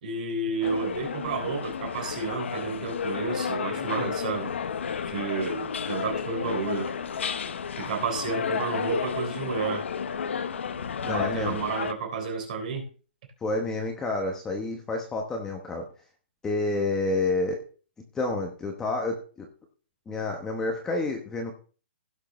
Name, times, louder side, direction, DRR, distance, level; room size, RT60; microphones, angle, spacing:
voice 1, 0.0-4.5 5.0-6.9 7.8-9.9 11.1-12.9, right 4 dB, 45° right, 2 dB, 3.7 m, -31 dB
sound 1, 0.6-11.9, left 7 dB, 80° left, 0.9 m, -32 dB
voice 2, 11.0-11.6 13.4-15.9 16.4-17.6 18.1-19.5 20.1-21.5, left 2 dB, 10° left, 2 dB, 1.0 m, -29 dB
16.5 x 6.6 x 3.1 m, 0.38 s
hypercardioid pair, 165°, 6 cm